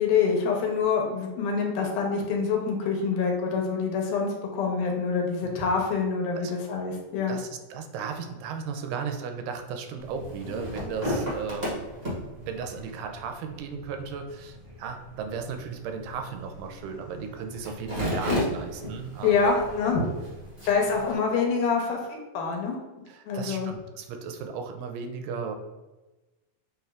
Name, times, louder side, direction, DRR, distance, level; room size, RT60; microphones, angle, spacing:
voice 1, 0.0-7.4 19.2-20.0 20.7-22.8 23.3-23.7, left 5 dB, 80° left, 0 dB, 2.3 m, -26 dB
voice 2, 7.3-11.9 12.4-20.0 23.1-25.6, right 6 dB, 85° right, 5 dB, 2.1 m, -35 dB
sound 1, 10.0-21.2, equal, 65° right, 0.5 m, -35 dB
7.6 x 2.9 x 2.4 m, 1.1 s
omnidirectional pair, 3.7 m